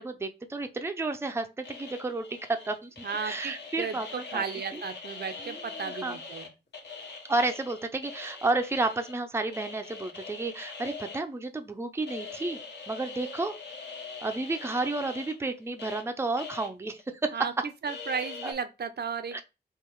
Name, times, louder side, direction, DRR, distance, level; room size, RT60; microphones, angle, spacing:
voice 1, 0.0-4.4 4.7-4.8 5.4-5.6 5.9-6.2 7.3-12.6 12.9-13.5 14.2-17.4 18.4-18.5 19.3-19.4, right 2 dB, 15° right, 0.5 m, -31 dB
sound 1, 1.6-6.5 6.7-9.1 9.5-11.2 12.0-16.0 16.4-16.7 17.0-17.1 17.9-18.5, left 4 dB, 80° left, 1.4 m, -42 dB
voice 2, 3.0-6.5 17.3-17.5 17.8-19.4, right 6 dB, 65° right, 0.5 m, -34 dB
3.7 x 2.9 x 4.5 m
wide cardioid pair, 135°, 18 cm